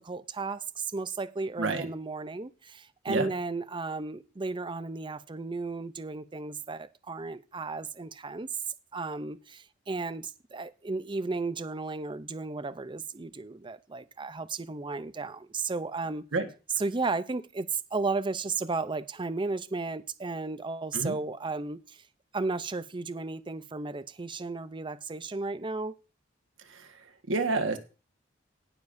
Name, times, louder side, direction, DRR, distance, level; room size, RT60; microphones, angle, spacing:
voice 1, 0.0-8.5 8.9-16.3 16.7-22.0 22.3-26.0, right 3 dB, 25° right, 0.6 m, -34 dB
voice 2, 27.3-27.8, right 3 dB, 75° right, 1.6 m, -28 dB
19.0 x 7.0 x 2.7 m
head